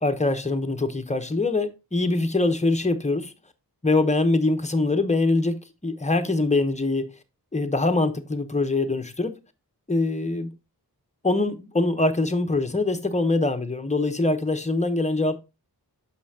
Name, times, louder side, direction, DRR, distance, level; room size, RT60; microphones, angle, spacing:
voice 1, 0.0-3.3 3.8-7.1 7.5-9.3 9.9-10.5 11.2-15.4, left 2 dB, 15° left, 0.9 m, -23 dB
6.5 x 5.5 x 2.8 m
cardioid pair, 45°, 39 cm